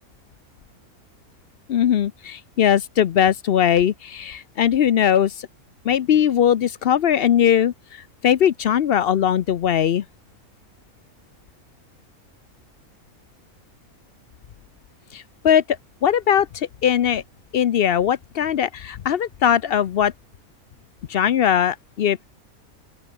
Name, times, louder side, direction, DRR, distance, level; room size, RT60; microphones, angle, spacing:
voice 1, 1.7-5.3 5.9-7.7 8.2-10.0 15.1-15.6 16.0-16.5 16.8-17.2 17.5-20.1 21.1-22.3, left 9 dB, 60° left, 0.6 m, -19 dB
open air
omnidirectional pair, 1.5 m